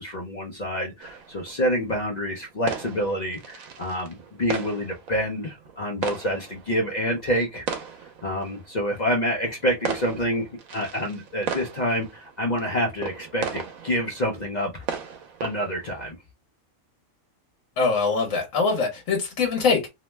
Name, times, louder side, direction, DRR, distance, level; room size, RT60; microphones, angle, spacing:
voice 1, 0.0-7.7 8.0-15.1 15.4-16.2, equal, 50° left, 0.6 m, -27 dB
sound 1, 1.0-16.1, right 6 dB, 85° right, 1.1 m, -37 dB
voice 2, 17.8-19.9, left 4 dB, 70° left, 1.2 m, -23 dB
2.9 x 2.1 x 3.1 m
omnidirectional pair, 1.4 m